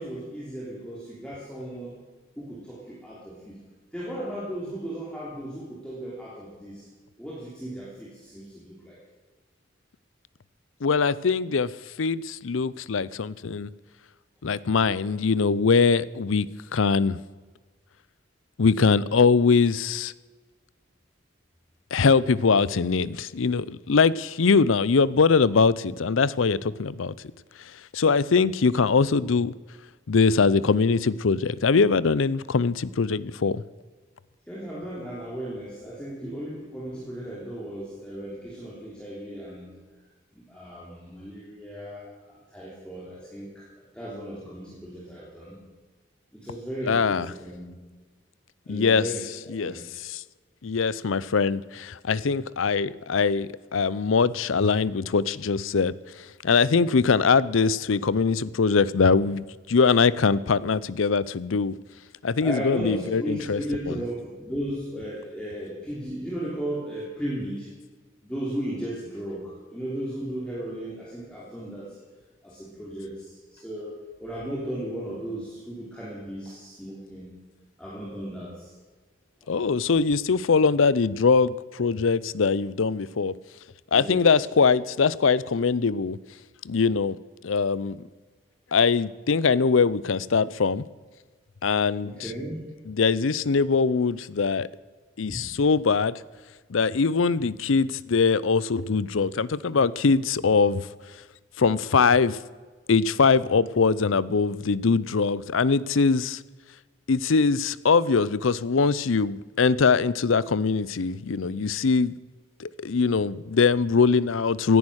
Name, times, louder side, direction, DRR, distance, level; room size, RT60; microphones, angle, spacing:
voice 1, 0.0-2.0 2.4-3.6 3.9-6.8 7.2-9.0 14.5-14.6 34.5-39.7 40.3-43.7 43.9-45.6 46.3-47.7 48.7-49.9 62.4-67.7 68.2-71.9 72.4-77.3 77.8-78.7 83.9-84.3 92.0-92.6 95.3-95.4, equal, 5° left, 3.1 m, -35 dB
voice 2, 10.8-11.7 12.0-13.7 14.4-17.2 18.6-20.1 21.9-27.1 27.9-29.5 30.1-33.6 46.8-47.3 48.7-50.2 50.6-55.9 56.4-61.7 62.2-64.0 79.5-83.3 83.9-86.2 86.6-87.2 87.4-88.0 88.7-90.8 91.6-92.3 92.9-94.7 95.2-96.2 96.7-100.9 101.6-102.4 102.9-106.4 107.1-112.1 112.6-114.8, left 5 dB, 85° left, 0.6 m, -22 dB
17.0 x 11.0 x 6.4 m
head